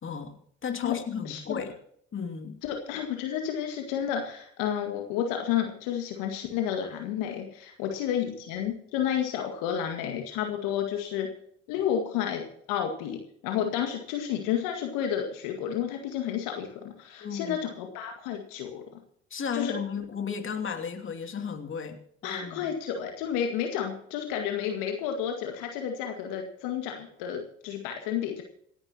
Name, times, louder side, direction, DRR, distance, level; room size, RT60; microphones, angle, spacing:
voice 1, 0.0-0.4 0.6-1.7 2.1-2.6 17.2-17.6 19.3-22.6, left 6 dB, 35° left, 5 dB, 2.8 m, -34 dB
voice 2, 1.2-1.6 2.6-11.3 11.7-13.2 13.4-18.8 19.5-19.8 22.2-28.4, left 9 dB, 65° left, 4 dB, 2.1 m, -31 dB
27.0 x 10.5 x 3.0 m, 0.66 s
hypercardioid pair, 55°, 34 cm